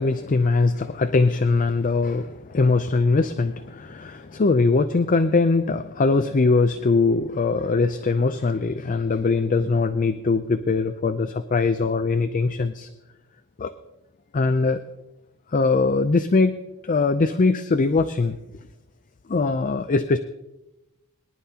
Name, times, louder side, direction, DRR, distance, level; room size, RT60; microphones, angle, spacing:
voice 1, 0.0-12.9 13.6-13.7 14.3-14.8 15.5-16.6 16.8-18.4 19.3-20.2, left 3 dB, 35° left, 10 dB, 0.5 m, -21 dB
22.5 x 11.0 x 2.9 m, 0.95 s
head